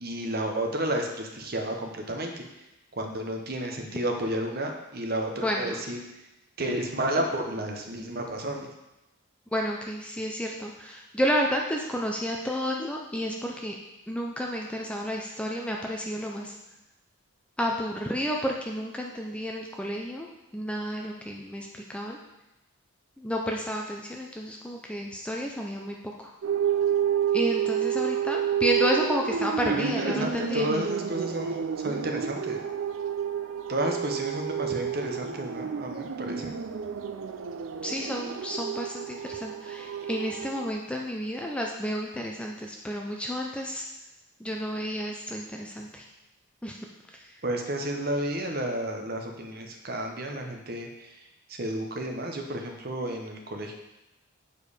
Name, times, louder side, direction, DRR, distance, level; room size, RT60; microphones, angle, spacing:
voice 1, 0.0-2.4 3.0-6.0 6.6-8.7 29.7-32.6 33.7-36.5 47.4-51.1 51.5-53.7, right 1 dB, 45° right, 3 dB, 0.9 m, -31 dB
voice 2, 5.4-5.8 9.5-13.8 14.1-16.5 17.6-22.2 23.2-26.3 27.3-30.7 37.8-43.8 44.4-46.0 46.6-46.8, equal, 5° left, 0 dB, 0.4 m, -31 dB
sound 1, 26.4-40.7, right 8 dB, 65° right, 0.4 m, -30 dB
7.1 x 4.6 x 4.9 m, 0.96 s
head